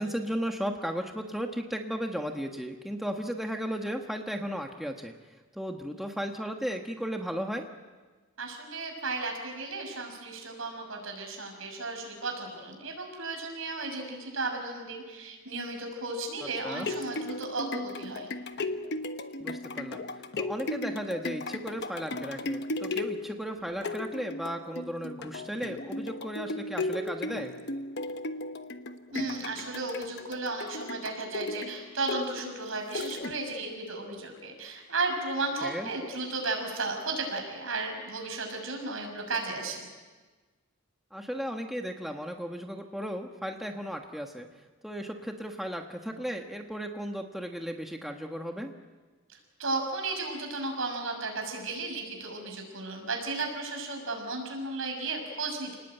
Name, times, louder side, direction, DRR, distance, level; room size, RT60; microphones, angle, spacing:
voice 1, 0.0-5.1 5.5-7.7 16.6-16.9 19.4-20.0 20.3-27.5 35.6-35.9 41.1-44.5 44.8-48.7, equal, ahead, 3 dB, 1.3 m, -35 dB
voice 2, 8.4-18.3 29.1-39.9 49.6-55.8, right 3 dB, 70° right, 3 dB, 6.4 m, -34 dB
sound 1, 16.5-33.7 34.2-34.3, left 2 dB, 50° left, 1.1 m, -36 dB
28.5 x 19.5 x 9.1 m, 1.3 s
head